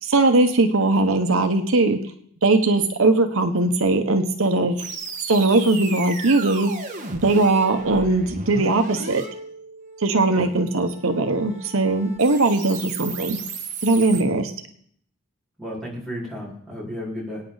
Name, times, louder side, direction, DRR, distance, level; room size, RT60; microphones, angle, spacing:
voice 1, 0.0-2.0 2.4-4.8 5.3-6.7 7.1-9.2 10.0-13.4 13.8-14.5, right 2 dB, 70° right, 6 dB, 1.0 m, -20 dB
sound 1, 4.8-14.2, right 4 dB, 35° right, 1.5 m, -35 dB
voice 2, 15.6-17.4, equal, ahead, -7 dB, 4.4 m, -33 dB
23.0 x 9.1 x 4.0 m, 0.64 s
head